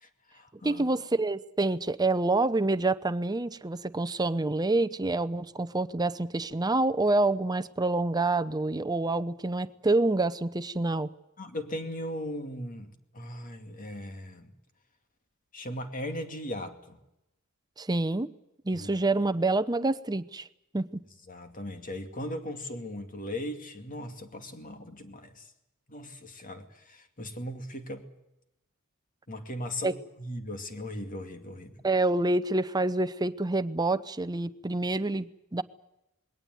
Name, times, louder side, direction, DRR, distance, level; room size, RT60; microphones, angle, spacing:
voice 1, 0.0-0.9 11.4-14.5 15.5-17.0 18.7-18.9 21.3-25.5 25.9-28.1 29.3-31.7, left 1 dB, 40° left, 7 dB, 2.4 m, -38 dB
voice 2, 0.6-11.1 17.8-18.3 18.6-20.5 20.7-21.0 29.8-29.9 31.8-35.6, right 2 dB, 20° right, 13 dB, 0.8 m, -27 dB
21.0 x 17.5 x 9.4 m, 0.89 s
head